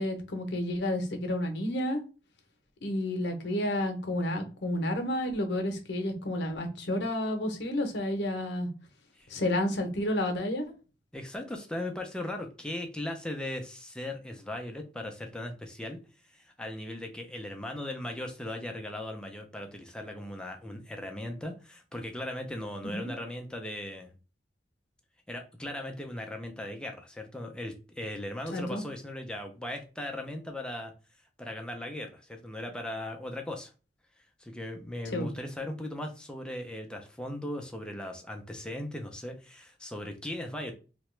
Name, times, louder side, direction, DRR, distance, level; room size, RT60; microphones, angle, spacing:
voice 1, 0.0-2.0 2.8-8.7 9.3-10.7 22.8-23.1 28.5-28.8 35.1-35.3, left 1 dB, 75° left, 5 dB, 0.7 m, -30 dB
voice 2, 11.1-16.0 16.3-24.1 25.3-30.9 31.4-33.7 34.4-40.7, left 1 dB, 5° left, 3 dB, 0.4 m, -38 dB
2.9 x 2.2 x 3.1 m, 0.33 s
head